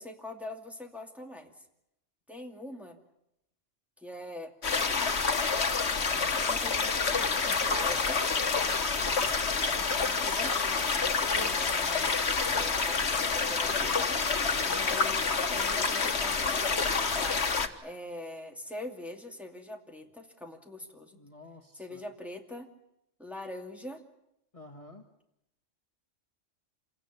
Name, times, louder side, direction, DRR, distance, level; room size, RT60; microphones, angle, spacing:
voice 1, 0.0-1.5 2.3-3.0 4.0-4.5 4.9-5.1 6.3-8.2 9.0-9.2 9.6-14.2 14.7-21.2 21.7-22.7 23.2-24.0, left 1 dB, ahead, 2 dB, 2.6 m, -43 dB
sound 1, 4.6-17.7, left 4 dB, 60° left, 1.7 m, -28 dB
voice 2, 8.9-9.3 14.5-14.9 21.1-22.0 24.5-25.0, left 2 dB, 25° left, 3 dB, 2.1 m, -51 dB
28.0 x 17.5 x 9.9 m, 0.82 s
omnidirectional pair, 1.3 m